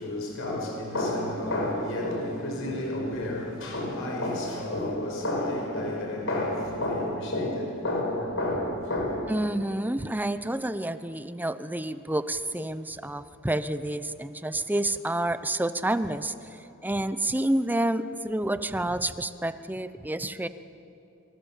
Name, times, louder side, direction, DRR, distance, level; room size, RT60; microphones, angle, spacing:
voice 1, 0.0-9.2, left 1 dB, 65° left, 5.4 m, -30 dB
voice 2, 9.3-20.5, right 1 dB, 10° right, 0.7 m, -29 dB
28.5 x 24.5 x 7.4 m
head